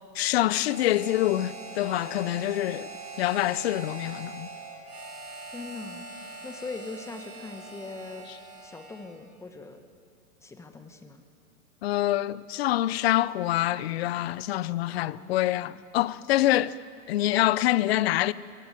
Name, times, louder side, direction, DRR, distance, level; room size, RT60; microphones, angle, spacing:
voice 1, 0.1-2.9 3.2-4.5 11.8-16.8 17.1-18.3, left 14 dB, 45° left, 0.7 m, -26 dB
Harmonica, 0.6-9.2, right 4 dB, 90° right, 5.0 m, -42 dB
voice 2, 5.5-6.1 6.4-8.3 8.6-9.8 10.4-11.2 14.9-15.9, left 3 dB, 5° left, 1.2 m, -41 dB
25.0 x 16.0 x 9.3 m
hypercardioid pair, 130°, 44 cm